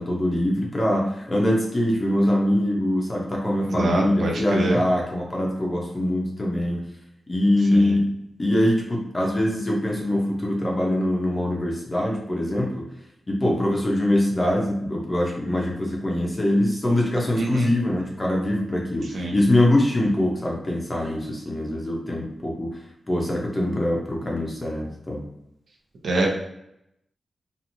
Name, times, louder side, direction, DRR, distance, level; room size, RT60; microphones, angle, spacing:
voice 1, 0.0-6.8 7.3-8.1 8.4-12.8 13.3-22.7 23.1-25.2, left 1 dB, 20° left, -1 dB, 0.6 m, -23 dB
voice 2, 3.6-4.8 17.4-17.7 19.1-19.3 26.0-26.3, right 2 dB, 70° right, -1 dB, 0.6 m, -25 dB
2.9 x 2.5 x 2.6 m, 0.80 s
wide cardioid pair, 140°, 0 cm